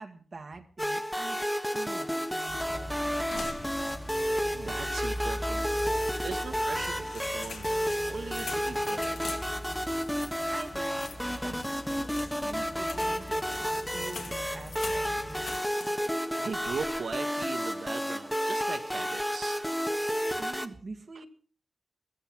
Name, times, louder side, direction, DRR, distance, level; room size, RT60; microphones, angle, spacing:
voice 1, 0.0-3.2 10.5-15.5 20.4-21.3, right 3 dB, 45° right, 4 dB, 1.8 m, -46 dB
sound 1, 0.8-20.7, equal, 5° left, 1.4 m, -31 dB
sound 2, 2.5-15.6, equal, 20° left, 1.6 m, -42 dB
sound 3, 3.3-4.2 4.5-4.6 5.0-5.9 6.5-16.2 16.6-17.1, left 4 dB, 75° left, 3.0 m, -45 dB
voice 2, 4.5-5.7 6.2-7.8 8.0-9.2 10.4-10.5 16.4-19.7 21.1-21.2, right 5 dB, 75° right, 11 dB, 1.4 m, -39 dB
15.0 x 14.0 x 6.0 m, 0.42 s
wide cardioid pair, 90°, 0 cm